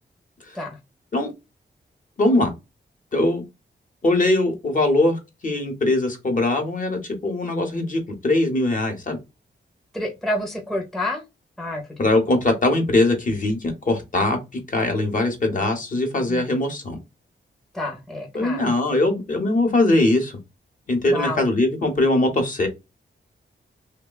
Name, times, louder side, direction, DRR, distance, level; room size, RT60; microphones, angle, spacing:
voice 1, 2.2-2.5 3.1-3.4 4.0-9.2 12.0-14.4 14.7-17.0 18.3-20.4 20.9-22.7, left 2 dB, 45° left, 0.8 m, -21 dB
voice 2, 9.9-11.2 11.6-12.0 16.3-16.4 17.7-18.7 21.1-21.5, left 1 dB, ahead, 0.6 m, -29 dB
3.0 x 2.1 x 2.2 m
wide cardioid pair, 165°, 19 cm